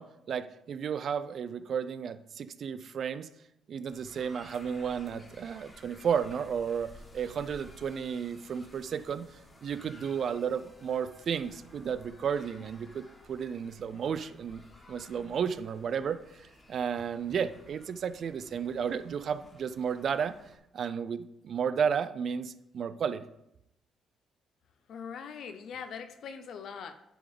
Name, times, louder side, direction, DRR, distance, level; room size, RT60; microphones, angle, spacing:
voice 1, 0.0-3.3 3.7-9.3 9.6-14.6 14.9-16.2 16.7-20.4 20.7-23.3, right 7 dB, 60° right, 13 dB, 0.5 m, -33 dB
sound 1, 3.9-20.6, left 1 dB, 25° left, 1.7 m, -55 dB
voice 2, 24.9-26.9, left 6 dB, 65° left, 8 dB, 0.6 m, -41 dB
10.0 x 3.8 x 5.2 m, 0.83 s
cardioid pair, 90°, 0 cm